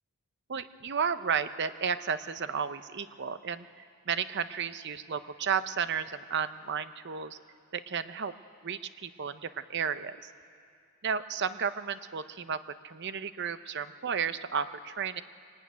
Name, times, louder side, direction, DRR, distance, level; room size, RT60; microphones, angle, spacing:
voice 1, 0.5-7.4 7.7-8.3 8.6-10.3 11.0-15.2, right 6 dB, 55° right, 12 dB, 0.7 m, -33 dB
22.0 x 18.5 x 9.4 m, 2.3 s
head